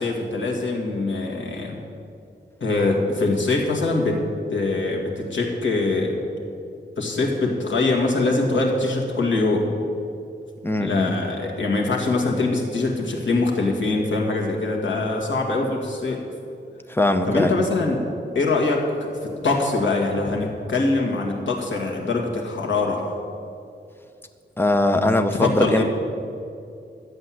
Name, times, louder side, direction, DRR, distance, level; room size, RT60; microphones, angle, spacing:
voice 1, 0.0-1.8 2.6-6.2 7.0-9.7 10.8-16.2 17.2-18.0 18.3-23.1 25.4-25.8, left 3 dB, 85° left, 0 dB, 2.1 m, -23 dB
voice 2, 10.6-11.1 16.9-17.5 24.6-25.8, left 1 dB, 10° left, 7 dB, 0.8 m, -20 dB
12.0 x 8.0 x 7.5 m, 2.4 s
wide cardioid pair, 130°, 19 cm